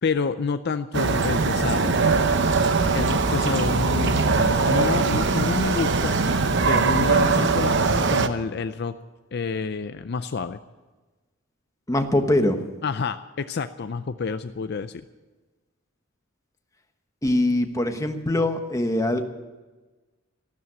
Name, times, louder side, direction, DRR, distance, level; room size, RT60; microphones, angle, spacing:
voice 1, 0.0-1.9 2.9-6.2 6.7-8.9 9.3-10.6 12.8-15.0, left 4 dB, 55° left, 11 dB, 0.5 m, -28 dB
sound 1, 0.9-8.3, right 4 dB, 60° right, 0.8 m, -21 dB
voice 2, 11.9-12.6 17.2-19.2, left 1 dB, 15° left, 6 dB, 1.2 m, -22 dB
14.0 x 12.5 x 7.3 m, 1.2 s
head